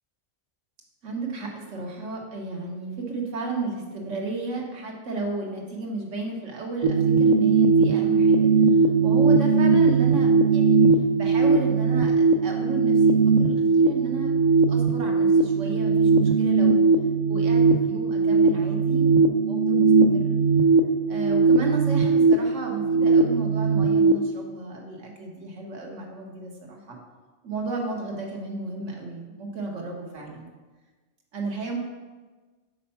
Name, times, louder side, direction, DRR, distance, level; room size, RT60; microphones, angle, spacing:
voice 1, 1.0-8.5 9.0-10.8 11.1-14.3 14.7-16.8 17.3-20.4 21.1-27.0 27.4-30.5 31.3-31.8, right 3 dB, 85° right, 0 dB, 1.5 m, -33 dB
sound 1, 6.8-24.1, right 4 dB, 55° right, 0.4 m, -19 dB
5.8 x 4.3 x 5.6 m, 1.3 s
omnidirectional pair, 1.2 m